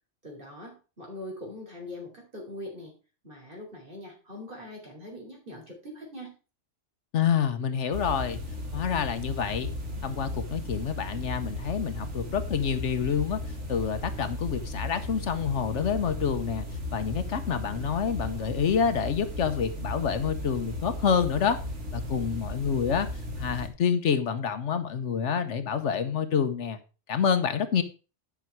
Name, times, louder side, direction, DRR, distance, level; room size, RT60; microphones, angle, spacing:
voice 1, 0.2-2.9 3.2-6.3, left 1 dB, 45° right, 0 dB, 3.7 m, -42 dB
voice 2, 7.1-8.4 8.7-9.7 10.0-13.4 13.7-16.7 16.9-21.6 21.9-23.1 23.4-26.8 27.1-27.8, left 7 dB, 75° left, 10 dB, 1.2 m, -27 dB
sound 1, 7.9-23.7, left 1 dB, 70° right, 2.2 m, -35 dB
10.5 x 5.9 x 4.6 m, 0.33 s
omnidirectional pair, 1.3 m